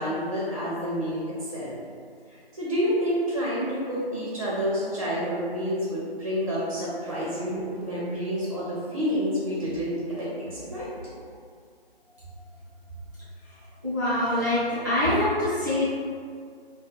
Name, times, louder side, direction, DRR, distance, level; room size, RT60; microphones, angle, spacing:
voice 1, 0.0-1.8 2.3-11.1 12.2-12.3, equal, 35° right, -8 dB, 0.5 m, -29 dB
voice 2, 13.8-15.9, left 1 dB, 20° left, -13 dB, 0.6 m, -24 dB
2.4 x 2.4 x 3.1 m, 2.2 s
figure-of-eight pair, 155°, 31 cm